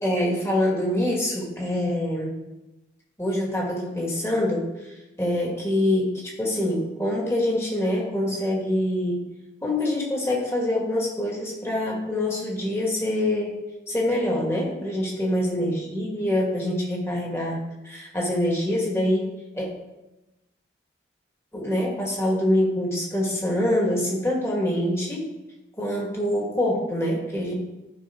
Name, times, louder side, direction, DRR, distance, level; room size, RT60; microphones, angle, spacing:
voice 1, 0.0-2.3 3.2-9.2 9.6-13.6 13.9-19.7 21.5-25.3 25.8-27.5, left 1 dB, 15° left, -3 dB, 2.1 m, -25 dB
13.5 x 5.6 x 3.9 m, 1.0 s
head